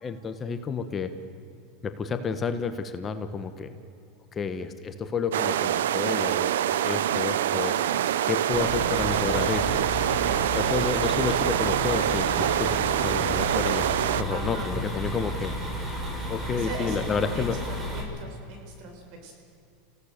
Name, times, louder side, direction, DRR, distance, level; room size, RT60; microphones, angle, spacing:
voice 1, 0.0-1.1 1.8-3.7 4.3-6.5 6.8-9.7 10.5-15.5 16.3-17.6, left 5 dB, 25° left, 9 dB, 1.3 m, -30 dB
sound 1, 5.3-14.2, right 11 dB, 90° right, 0.7 m, -25 dB
sound 2, 8.5-18.0, equal, 20° right, 5.7 m, -32 dB
voice 2, 14.3-14.7 16.5-17.0 17.3-19.3, right 3 dB, 55° right, 2 dB, 6.3 m, -40 dB
29.0 x 16.5 x 6.8 m, 2.7 s
supercardioid pair, 120°, 0 cm